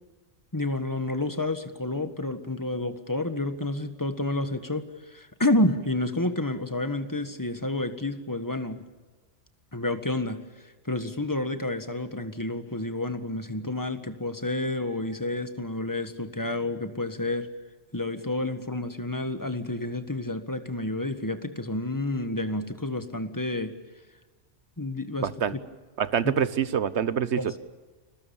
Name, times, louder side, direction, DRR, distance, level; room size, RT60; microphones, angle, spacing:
voice 1, 0.5-8.8 9.7-10.4 10.8-17.5 17.9-23.7 24.8-25.6 26.2-26.3 27.4-27.6, left 2 dB, 15° left, 9 dB, 1.6 m, -29 dB
voice 2, 25.2-25.5 26.0-27.6, right 8 dB, 65° right, 15 dB, 1.3 m, -26 dB
30.0 x 22.0 x 7.2 m, 1.2 s
omnidirectional pair, 1.3 m